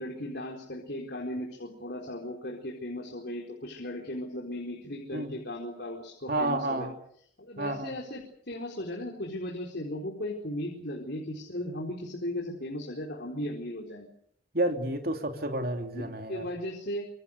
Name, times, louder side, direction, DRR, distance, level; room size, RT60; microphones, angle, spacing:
voice 1, 0.0-6.9 7.4-14.1 15.9-16.0 16.3-17.1, left 1 dB, 55° left, -2 dB, 4.4 m, -36 dB
voice 2, 6.3-6.9 7.6-7.9 14.5-16.5, right 1 dB, 50° right, 5 dB, 3.0 m, -30 dB
26.5 x 24.5 x 6.7 m, 0.66 s
head